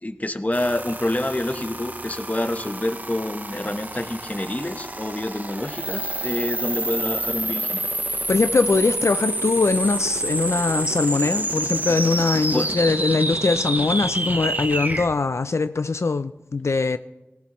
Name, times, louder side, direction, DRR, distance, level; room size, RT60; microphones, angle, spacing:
voice 1, 0.0-7.8 12.5-12.7, left 1 dB, 30° left, 1.0 m, -27 dB
sound 1, 0.5-15.1, right 1 dB, 40° right, 0.9 m, -28 dB
voice 2, 8.3-17.0, left 3 dB, 85° left, 0.4 m, -22 dB
18.0 x 17.5 x 3.1 m
wide cardioid pair, 40°, 5 cm